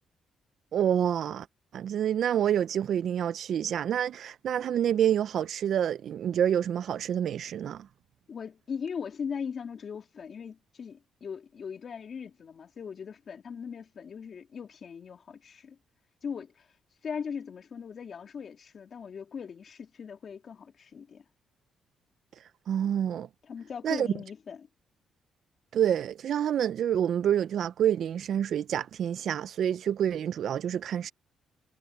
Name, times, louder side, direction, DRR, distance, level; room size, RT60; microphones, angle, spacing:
voice 1, 0.7-1.5 1.7-7.9 22.7-23.3 23.8-24.1 25.7-31.1, right 9 dB, 65° right, 0.5 m, -27 dB
voice 2, 8.3-15.8 16.2-16.7 17.0-21.2 23.4-24.7, left 6 dB, 50° left, 2.9 m, -39 dB
cardioid pair, 90°, 0 cm